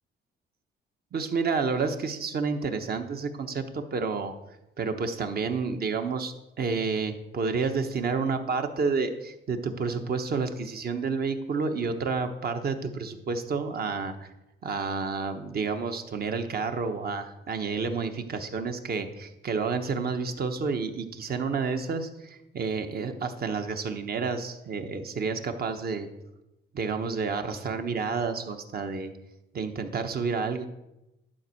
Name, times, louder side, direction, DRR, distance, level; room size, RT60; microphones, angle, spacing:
voice 1, 1.1-4.3 4.8-14.3 14.6-26.1 26.7-29.1 29.5-30.7, right 4 dB, 50° right, 6 dB, 1.1 m, -30 dB
11.5 x 4.4 x 6.3 m, 0.93 s
cardioid pair, 90°, 20 cm